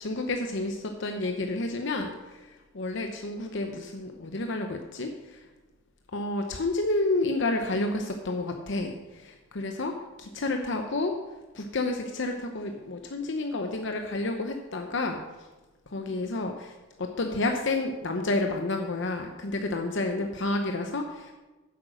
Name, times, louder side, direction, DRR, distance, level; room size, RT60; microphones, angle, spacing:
voice 1, 0.0-5.4 6.1-11.2 11.5-15.2 15.9-21.3, left 2 dB, 65° left, 4 dB, 0.8 m, -30 dB
9.8 x 8.2 x 6.3 m, 1.2 s
head